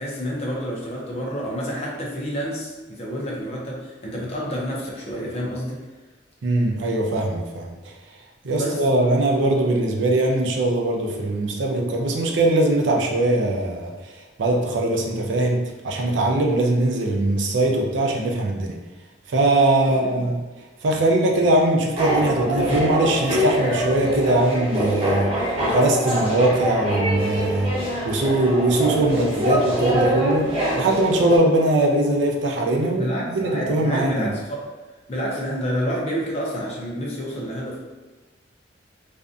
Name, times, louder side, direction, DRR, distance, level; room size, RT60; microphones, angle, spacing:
voice 1, 0.0-5.8 8.4-8.8 19.9-20.3 33.0-34.7 35.1-37.8, equal, 35° left, -3 dB, 0.5 m, -29 dB
voice 2, 6.4-7.7 8.4-13.9 14.4-18.8 19.3-20.3 20.8-27.8 28.0-34.3, right 1 dB, 85° right, 1 dB, 0.4 m, -21 dB
sound 1, 22.0-31.4, equal, 30° right, 0.7 m, -24 dB
2.5 x 2.2 x 2.5 m, 1.2 s
head